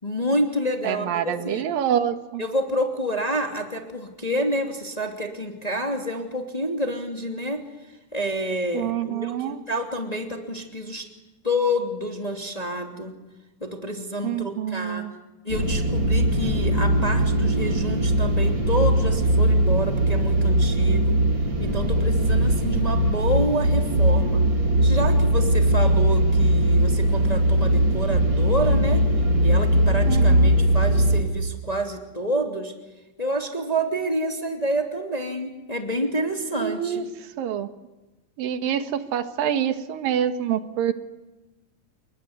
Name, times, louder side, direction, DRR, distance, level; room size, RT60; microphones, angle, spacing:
voice 1, 0.0-1.7 2.4-7.6 8.1-11.1 11.4-13.1 13.6-15.0 15.4-21.1 21.6-24.4 24.8-29.0 29.4-32.7 33.2-37.0, equal, 10° left, 3 dB, 2.6 m, -28 dB
voice 2, 0.8-2.4 8.7-9.6 14.2-15.1 30.1-30.5 36.5-37.1 37.4-37.7 38.4-40.9, right 9 dB, 85° right, 10 dB, 3.2 m, -26 dB
sound 1, 15.5-31.2, right 1 dB, 35° right, 3.2 m, -20 dB
29.5 x 21.0 x 9.7 m, 1.1 s
omnidirectional pair, 3.9 m